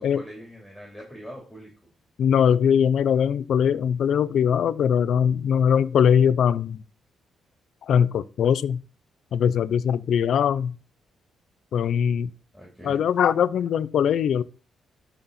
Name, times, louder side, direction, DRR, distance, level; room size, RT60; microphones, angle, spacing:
voice 1, 0.0-1.7 12.5-13.0, equal, ahead, 3.6 m, -42 dB
voice 2, 2.2-6.8 7.8-8.8 9.3-10.8 11.7-12.3 12.8-14.4, left 8 dB, 70° left, 0.6 m, -21 dB
12.5 x 4.3 x 4.2 m
cardioid pair, 80°, 0 cm